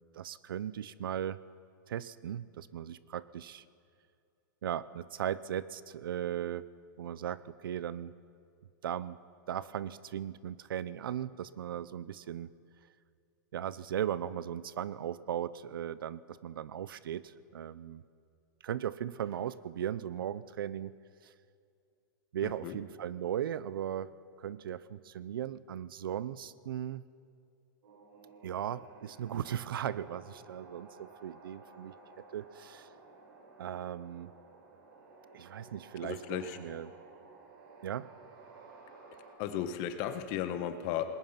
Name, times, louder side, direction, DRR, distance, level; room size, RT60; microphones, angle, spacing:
voice 1, 0.1-1.4 1.9-3.6 4.6-6.7 7.0-8.1 8.8-9.2 9.5-12.5 13.5-18.0 18.6-21.3 22.3-27.0 28.4-32.0 32.3-32.9 33.6-34.3 35.3-36.9 37.8-38.1, right 10 dB, 85° right, 17 dB, 0.8 m, -37 dB
voice 2, 22.4-22.8 36.0-36.6 39.4-41.1, left 10 dB, 35° left, 9 dB, 1.5 m, -35 dB
sound 1, 27.8-39.3, right 3 dB, 70° right, 6.1 m, -55 dB
28.0 x 20.0 x 5.8 m, 2.4 s
supercardioid pair, 155°, 11 cm